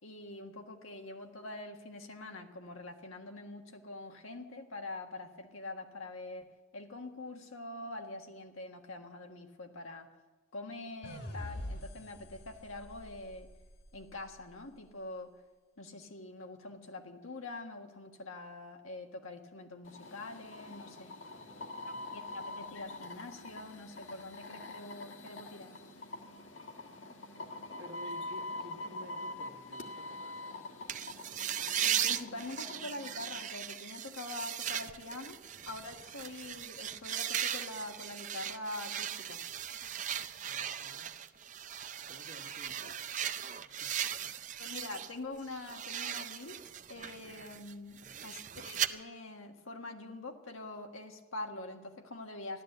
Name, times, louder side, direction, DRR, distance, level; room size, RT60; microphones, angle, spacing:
voice 1, 0.0-10.1 10.5-13.5 13.9-15.3 15.8-21.1 22.1-25.7 31.8-35.4 35.6-39.4 44.6-46.6 46.9-52.6, left 2 dB, 90° left, 4 dB, 1.6 m, -45 dB
sound 1, 11.0-14.3, left 1 dB, 50° left, 1.7 m, -45 dB
sound 2, 19.8-33.4, left 2 dB, 65° left, 1.7 m, -45 dB
voice 2, 21.4-22.1 27.8-30.4 40.4-41.2 42.1-43.0 43.6-43.9 44.2-44.5 48.0-48.4, equal, 55° right, 3 dB, 1.5 m, -53 dB
sound 3, 30.9-45.1 45.4-48.9, right 9 dB, 35° right, 0.5 m, -38 dB
14.5 x 12.0 x 8.0 m, 1.2 s
head